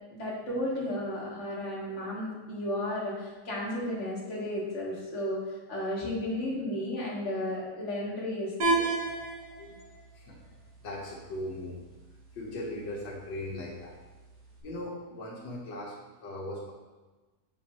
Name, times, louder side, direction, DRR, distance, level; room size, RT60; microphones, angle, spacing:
voice 1, 0.1-5.4 5.7-8.8, left 1 dB, 40° left, -6 dB, 2.0 m, -33 dB
sound 1, 8.6-14.6, right 3 dB, 65° right, 1.9 m, -35 dB
voice 2, 10.8-11.8 12.3-14.0 14.6-16.7, left 1 dB, 85° left, -3 dB, 1.8 m, -39 dB
7.8 x 5.1 x 3.0 m, 1.2 s
omnidirectional pair, 1.9 m